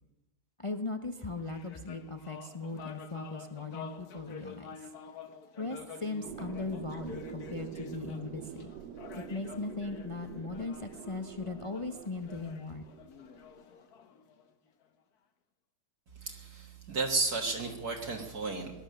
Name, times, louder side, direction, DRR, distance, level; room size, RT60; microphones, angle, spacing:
voice 1, 0.6-4.9 5.6-8.7 9.1-12.8, left 3 dB, 45° left, 7 dB, 0.4 m, -38 dB
sound 1, 1.1-14.8, left 6 dB, 65° left, 1.6 m, -49 dB
sound 2, 6.2-13.6, right 9 dB, 80° right, 1.3 m, -46 dB
voice 2, 16.2-18.7, right 3 dB, 60° right, 1 dB, 2.1 m, -33 dB
19.0 x 11.5 x 6.5 m, 1.0 s
omnidirectional pair, 1.8 m